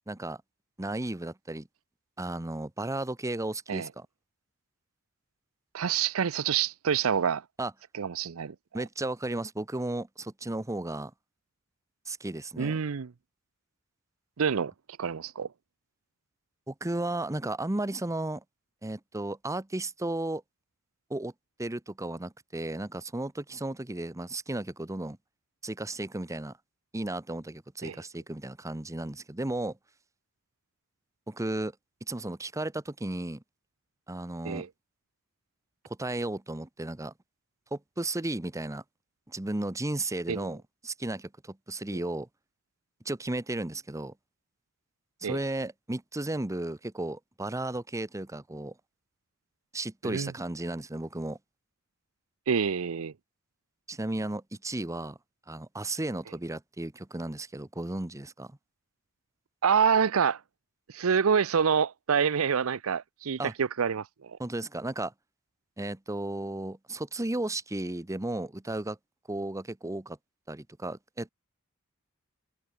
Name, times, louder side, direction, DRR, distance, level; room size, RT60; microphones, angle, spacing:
voice 1, 0.1-0.4 0.8-1.7 2.2-4.1 7.6-7.7 8.7-11.1 12.1-12.8 16.7-18.4 18.8-20.4 21.1-21.3 21.6-25.2 25.6-26.5 26.9-29.8 31.3-31.7 32.1-33.4 34.1-34.7 35.8-37.1 37.7-38.8 39.3-42.3 43.0-44.1 45.2-48.7 49.7-51.4 53.9-55.2 55.5-58.5 63.4-63.5 64.4-65.1 65.8-69.0 69.3-70.2 70.5-71.3, right 2 dB, 15° right, 0.9 m, -34 dB
voice 2, 5.7-7.4 8.0-8.8 12.6-13.1 14.4-14.7 15.0-15.5 27.8-28.0 34.4-34.7 40.3-40.5 41.9-42.0 45.2-45.4 50.0-50.3 52.5-53.1 59.6-60.4 60.9-64.4, right 7 dB, 80° right, 0.6 m, -27 dB
head